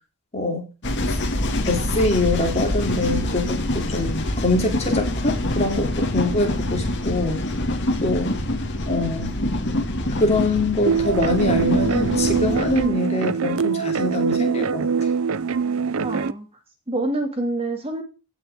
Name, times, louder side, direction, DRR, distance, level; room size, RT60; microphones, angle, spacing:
voice 1, 0.3-0.6 1.6-7.4 8.0-8.3 8.9-9.3 10.2-14.9, left 2 dB, 30° left, 2 dB, 3.1 m, -24 dB
sound 1, 0.8-12.9, left 1 dB, 55° left, 2.3 m, -25 dB
sound 2, 10.9-16.3, right 5 dB, 70° right, 0.6 m, -23 dB
voice 2, 16.0-16.5 16.9-18.0, right 2 dB, 25° right, 4 dB, 2.4 m, -26 dB
16.0 x 6.2 x 3.7 m, 0.31 s
head